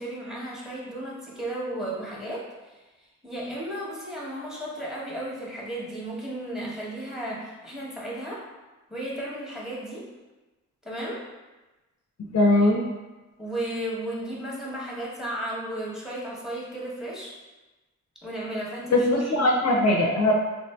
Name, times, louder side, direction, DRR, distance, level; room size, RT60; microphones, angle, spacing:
voice 1, 0.0-2.8 3.2-8.4 8.9-10.0 10.8-11.2 12.6-12.9 13.4-17.3 18.2-19.4, right 1 dB, ahead, -5 dB, 0.9 m, -34 dB
voice 2, 12.2-12.8 18.9-20.3, left 1 dB, 55° left, -1 dB, 0.4 m, -20 dB
3.5 x 2.5 x 2.2 m, 1.1 s
wide cardioid pair, 85°, 31 cm